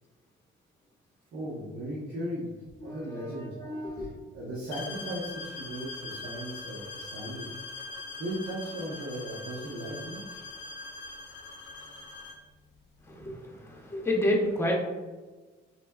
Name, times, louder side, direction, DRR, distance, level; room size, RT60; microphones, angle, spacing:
voice 1, 1.3-2.5 2.8-3.5 4.0-4.1 4.3-7.5 8.2-10.4, right 1 dB, 80° right, -6 dB, 0.8 m, -37 dB
voice 2, 2.8-4.2 13.0-14.7, left 1 dB, 10° left, -2 dB, 0.8 m, -30 dB
sound 1, 4.7-12.5, left 3 dB, 65° left, 0.6 m, -42 dB
4.1 x 2.2 x 2.3 m, 1.3 s
cardioid pair, 90°, 20 cm